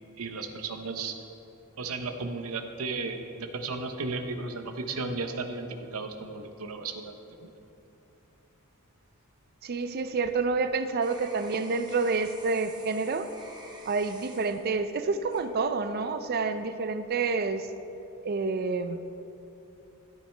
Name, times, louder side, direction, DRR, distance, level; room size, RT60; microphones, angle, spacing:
voice 1, 0.2-1.2 1.8-5.7 5.9-7.2 7.4-7.5, right 3 dB, 70° right, 6 dB, 0.8 m, -34 dB
voice 2, 9.6-13.3 13.9-17.7 18.2-19.0, right 4 dB, 45° right, 10 dB, 0.4 m, -28 dB
sound 1, 9.9-16.1 16.6-17.1, right 2 dB, 20° right, 1.0 m, -51 dB
13.5 x 8.6 x 3.3 m, 2.9 s
head